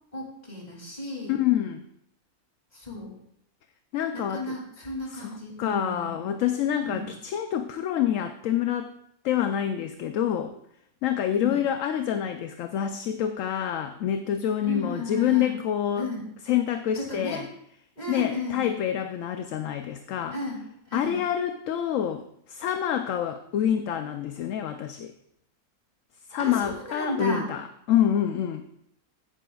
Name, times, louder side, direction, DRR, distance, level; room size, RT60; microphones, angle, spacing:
voice 1, 0.1-1.4 2.7-3.1 4.1-6.2 6.8-7.1 11.3-11.6 14.6-15.5 15.9-16.3 16.9-17.4 18.0-18.7 20.3-20.6 20.9-21.2 26.4-27.5, left 2 dB, 25° left, -2 dB, 2.8 m, -34 dB
voice 2, 1.3-1.9 3.9-4.6 5.1-5.3 5.6-8.9 9.2-10.5 11.0-16.1 16.5-17.5 18.1-20.4 20.9-25.1 26.3-28.6, left 10 dB, 70° left, 7 dB, 0.9 m, -27 dB
16.0 x 9.1 x 2.3 m, 0.74 s
omnidirectional pair, 1.6 m